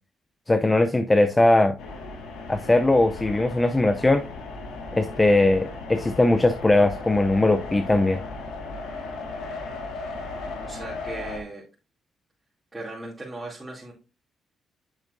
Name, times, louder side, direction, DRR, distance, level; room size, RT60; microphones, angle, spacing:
voice 1, 0.5-1.7 2.5-4.2 4.9-8.2, left 2 dB, 15° left, 8 dB, 0.5 m, -20 dB
sound 1, 1.8-11.4, left 3 dB, 85° left, 1.8 m, -36 dB
voice 2, 10.6-11.6 12.7-13.9, right 2 dB, 20° right, -7 dB, 2.7 m, -37 dB
8.2 x 7.0 x 2.6 m, 0.32 s
cardioid pair, 90°, 0 cm